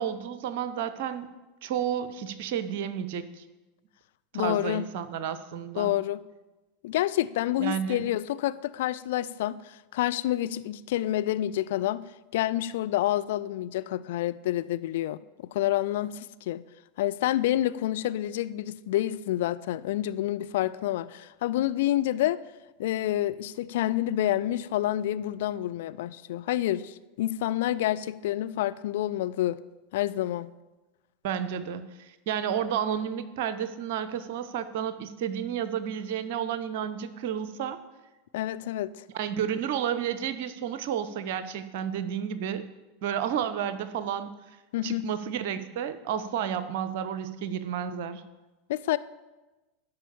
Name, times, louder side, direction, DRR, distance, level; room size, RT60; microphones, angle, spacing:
voice 1, 0.0-1.3 1.6-3.4 4.3-5.9 7.6-8.1 31.2-37.8 39.1-42.7 43.0-44.3 44.8-48.2, right 9 dB, 55° right, 13 dB, 0.7 m, -31 dB
voice 2, 4.3-4.9 5.8-6.2 6.8-12.0 12.3-15.2 15.5-16.6 17.0-22.4 22.8-29.6 29.9-30.5 38.3-38.9 44.7-45.1 48.7-49.0, left 13 dB, 60° left, 13 dB, 0.4 m, -28 dB
11.5 x 5.5 x 7.0 m, 1.1 s
figure-of-eight pair, 85°, 0 cm